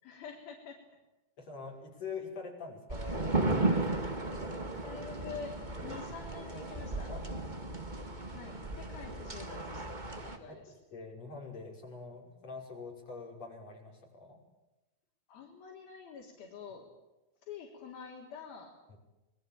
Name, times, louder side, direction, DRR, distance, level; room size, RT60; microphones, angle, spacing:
voice 1, 0.0-0.8 4.8-7.1 8.3-10.7 15.3-16.9 17.4-18.7, left 6 dB, 75° left, -2 dB, 5.3 m, -47 dB
voice 2, 1.4-5.0 7.1-7.7 10.5-14.4 18.9-19.0, left 4 dB, 45° left, 0 dB, 6.9 m, -46 dB
sound 1, 2.9-10.4, right 2 dB, 20° right, 1.5 m, -35 dB
26.5 x 21.5 x 8.9 m, 1.0 s
omnidirectional pair, 4.3 m